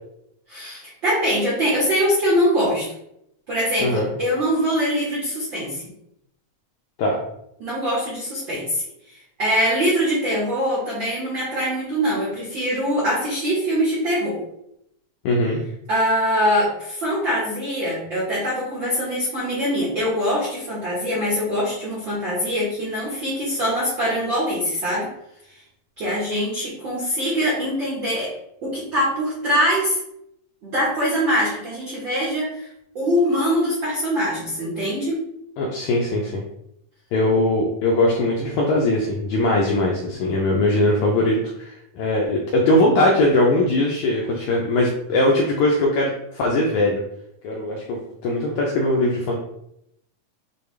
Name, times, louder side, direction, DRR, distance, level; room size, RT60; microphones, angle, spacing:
voice 1, 0.5-2.9 3.5-5.8 7.6-8.8 9.4-14.4 15.9-25.1 26.0-28.3 28.6-30.0 30.6-32.7 32.9-35.2, equal, 75° right, -7 dB, 1.0 m, -23 dB
voice 2, 15.2-15.6 35.6-36.4 37.1-47.0 47.4-49.4, left 1 dB, 85° left, -1 dB, 1.7 m, -20 dB
6.8 x 2.3 x 3.2 m, 0.78 s
omnidirectional pair, 4.1 m